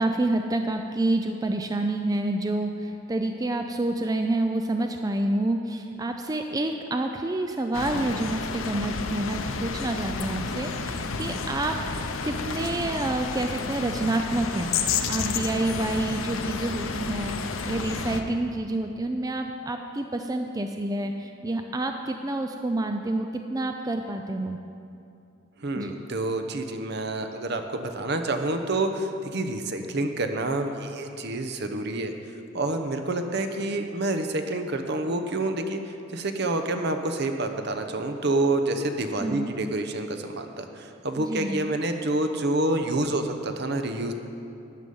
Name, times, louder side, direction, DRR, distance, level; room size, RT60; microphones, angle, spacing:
voice 1, 0.0-11.8 12.2-17.4 17.7-24.6 25.8-25.9 39.2-39.6 41.2-41.6, right 2 dB, 20° right, 5 dB, 0.4 m, -28 dB
sound 1, 7.7-18.2, left 4 dB, 85° left, 0.8 m, -31 dB
voice 2, 25.6-32.1 32.5-35.8 36.1-44.1, right 2 dB, 55° right, 6 dB, 0.9 m, -28 dB
13.0 x 9.1 x 5.4 m, 2.7 s
head